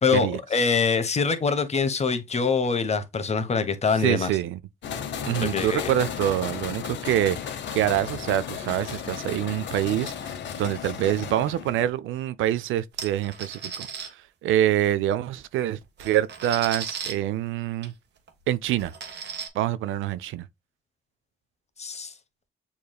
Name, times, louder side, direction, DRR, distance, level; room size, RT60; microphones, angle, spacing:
voice 1, 0.0-4.3 5.4-5.9 21.8-22.1, left 5 dB, 35° left, 1.0 m, -24 dB
voice 2, 4.0-4.6 5.3-17.9 18.5-18.9 19.5-20.5, right 12 dB, 80° right, 0.5 m, -26 dB
sound 1, 4.8-11.9, left 8 dB, 65° left, 0.9 m, -34 dB
sound 2, 13.0-14.1 15.4-15.5 15.8-17.1 17.8-17.9 18.3-18.4 18.8-19.5, right 6 dB, 60° right, 1.3 m, -35 dB
7.1 x 3.1 x 2.3 m
cardioid pair, 90°, 20 cm